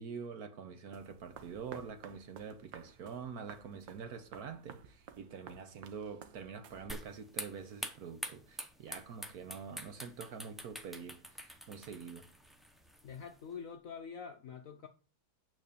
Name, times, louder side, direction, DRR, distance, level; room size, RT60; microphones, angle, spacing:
voice 1, 0.0-12.3, right 6 dB, 60° right, 1.2 m, -46 dB
sound 1, 0.9-7.2, right 8 dB, 80° right, 1.5 m, -54 dB
sound 2, 6.9-13.5, equal, ahead, 0.4 m, -46 dB
voice 2, 13.0-14.9, left 6 dB, 65° left, 0.8 m, -46 dB
8.9 x 4.3 x 6.7 m
omnidirectional pair, 2.1 m